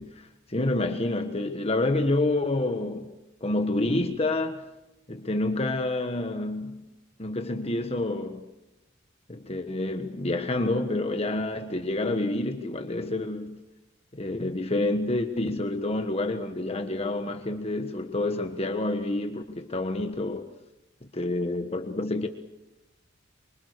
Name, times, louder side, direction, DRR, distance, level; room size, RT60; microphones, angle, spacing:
voice 1, 0.0-3.1 3.4-4.6 5.1-6.9 7.2-8.4 9.3-13.6 14.1-20.5 21.0-22.3, left 2 dB, 30° left, 1.4 m, -28 dB
25.0 x 25.0 x 6.7 m
head